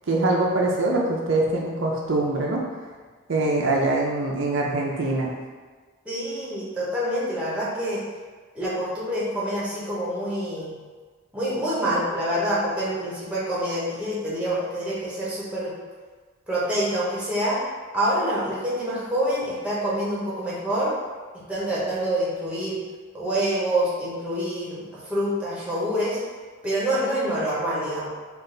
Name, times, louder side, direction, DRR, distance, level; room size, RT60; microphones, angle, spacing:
voice 1, 0.1-2.6 3.3-5.3, right 2 dB, 65° right, -2 dB, 0.5 m, -23 dB
voice 2, 6.0-8.0 8.5-10.7 11.3-15.7 16.5-17.6 17.9-20.9 21.5-22.8 23.1-26.2 26.6-28.1, right 1 dB, 5° right, -8 dB, 1.0 m, -26 dB
3.8 x 2.5 x 3.8 m, 1.5 s
head